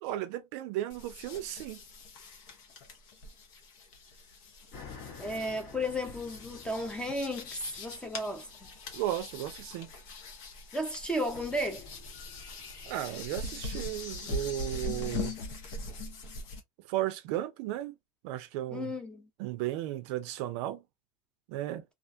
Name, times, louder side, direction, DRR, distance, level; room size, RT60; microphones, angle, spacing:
voice 1, 0.0-1.8 8.9-9.9 12.8-15.3 16.9-17.9 18.2-18.9 19.4-20.8 21.5-21.8, right 14 dB, 55° right, 0.4 m, -35 dB
sound 1, 0.9-16.6, left 2 dB, 65° left, 0.9 m, -42 dB
sound 2, 4.7-15.3, left 4 dB, 45° left, 1.0 m, -50 dB
voice 2, 5.2-8.5 10.7-11.8 18.7-19.2, equal, 5° left, 0.5 m, -34 dB
2.4 x 2.2 x 2.5 m
supercardioid pair, 125°, 17 cm